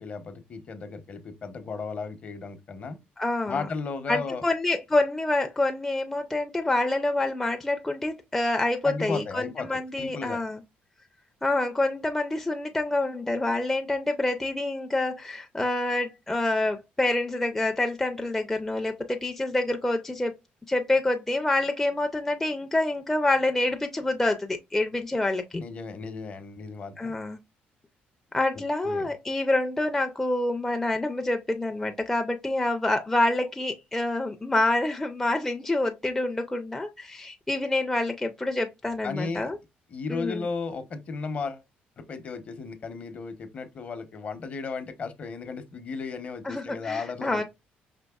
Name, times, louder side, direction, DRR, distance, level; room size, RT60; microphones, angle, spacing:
voice 1, 0.0-3.0 3.5-4.4 8.8-10.4 25.5-27.2 28.5-29.1 39.0-39.5 39.9-41.6 42.0-47.4, left 4 dB, 40° left, 0.8 m, -35 dB
voice 2, 3.2-3.7 4.1-10.6 11.4-20.3 20.7-25.6 27.0-27.4 28.3-39.6 40.1-40.5 46.4-47.4, left 2 dB, 10° left, 0.4 m, -27 dB
5.1 x 3.1 x 2.3 m
cardioid pair, 120°, 4 cm